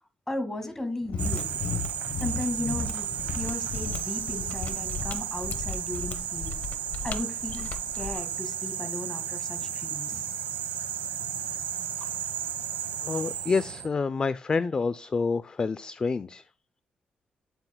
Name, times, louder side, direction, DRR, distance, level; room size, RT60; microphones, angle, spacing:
voice 1, 0.3-1.5 2.2-6.6 7.0-10.2, left 1 dB, 15° left, 1.8 m, -35 dB
Mechanisms, 1.0-8.2, left 4 dB, 75° left, 0.9 m, -35 dB
sound 1, 1.2-13.9, right 9 dB, 80° right, 1.2 m, -33 dB
voice 2, 13.0-16.4, left 4 dB, 30° left, 0.3 m, -28 dB
8.9 x 7.9 x 2.2 m
cardioid pair, 100°, 3 cm